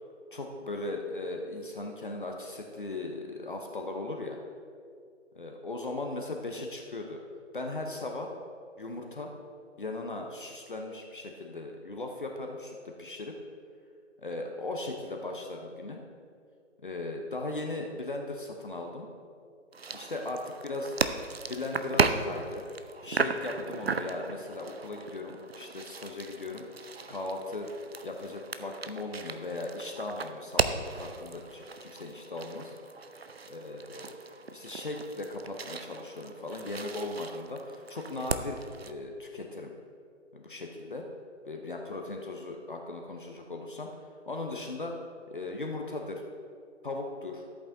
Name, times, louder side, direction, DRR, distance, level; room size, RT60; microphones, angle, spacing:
voice 1, 0.3-4.4 5.3-7.2 7.5-8.3 8.8-9.3 9.8-13.3 14.2-16.0 16.8-19.1 19.9-20.9 21.5-22.6 23.0-26.6 27.1-27.7 28.0-32.7 33.5-34.1 34.5-39.7 40.3-41.0 41.5-43.9 44.3-44.9 45.3-46.2 46.8-47.4, left 2 dB, 45° left, 2 dB, 0.8 m, -38 dB
sound 1, 19.7-38.9, right 4 dB, 55° right, 0.5 m, -36 dB
14.0 x 8.3 x 2.6 m, 2.3 s
figure-of-eight pair, 150°, 37 cm